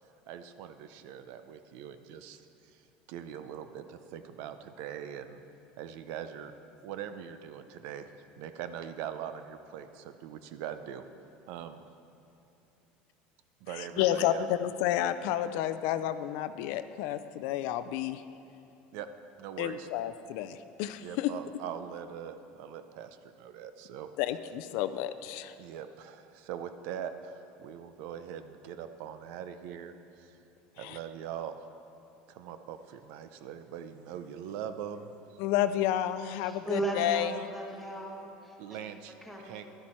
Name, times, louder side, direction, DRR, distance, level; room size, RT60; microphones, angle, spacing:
voice 1, 0.3-5.4 5.8-6.5 6.8-11.1 11.5-11.8 13.6-14.5 18.9-19.1 19.4-19.9 21.0-24.1 25.6-30.4 30.8-31.6 32.3-35.4 38.6-39.2 39.4-39.6, right 9 dB, 65° right, 10 dB, 0.6 m, -42 dB
voice 2, 14.0-18.2 19.6-21.3 24.2-25.6 30.8-31.0 35.4-37.3, left 11 dB, 65° left, 11 dB, 0.4 m, -30 dB
voice 3, 36.4-38.8 39.2-39.6, right 1 dB, ahead, -2 dB, 1.4 m, -36 dB
12.0 x 10.5 x 4.4 m, 2.9 s
cardioid pair, 150°, 4 cm